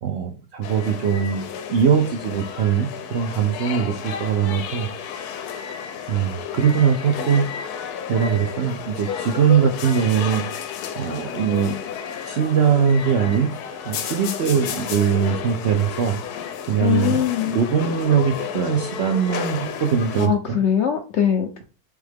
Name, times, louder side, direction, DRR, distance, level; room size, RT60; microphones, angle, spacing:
voice 1, 0.0-4.9 6.1-7.4 8.1-10.4 11.0-11.8 12.3-13.5 13.8-16.2 16.7-20.6, right 7 dB, 70° right, 3 dB, 0.6 m, -21 dB
sound 1, 0.6-20.3, left 8 dB, 90° left, 1.1 m, -32 dB
voice 2, 16.8-17.6 20.2-21.6, left 9 dB, 70° left, 5 dB, 0.7 m, -21 dB
3.6 x 3.4 x 3.4 m, 0.35 s
omnidirectional pair, 1.6 m